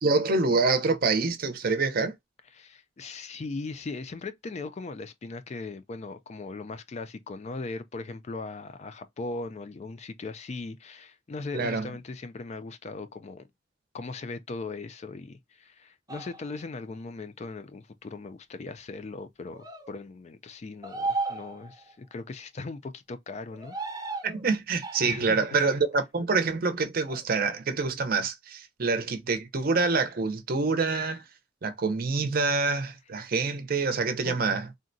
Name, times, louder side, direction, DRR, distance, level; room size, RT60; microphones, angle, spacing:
voice 1, 0.0-2.1 11.5-11.9 24.2-31.2 31.6-34.7, right 4 dB, 55° right, 0.6 m, -26 dB
voice 2, 2.5-13.5 13.9-23.8 25.0-25.5 34.2-34.4, left 3 dB, 35° left, 0.4 m, -39 dB
sound 1, 16.1-16.6 19.5-19.9 20.8-21.9 23.5-24.4 24.8-25.4 27.0-27.2, right 3 dB, 20° right, 0.7 m, -35 dB
3.7 x 2.1 x 2.6 m
head